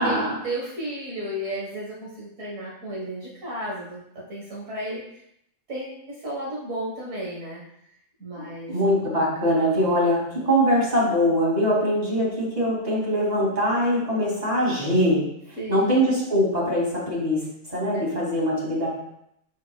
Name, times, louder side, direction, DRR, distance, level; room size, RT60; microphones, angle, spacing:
voice 1, 0.0-4.0 4.3-5.0 5.7-7.6 8.2-8.7 15.6-16.0, right 1 dB, 65° right, -6 dB, 1.8 m, -33 dB
voice 2, 8.7-15.2 15.7-17.4 17.7-18.9, equal, 25° right, -5 dB, 2.6 m, -22 dB
7.2 x 6.4 x 2.3 m, 0.75 s
omnidirectional pair, 1.5 m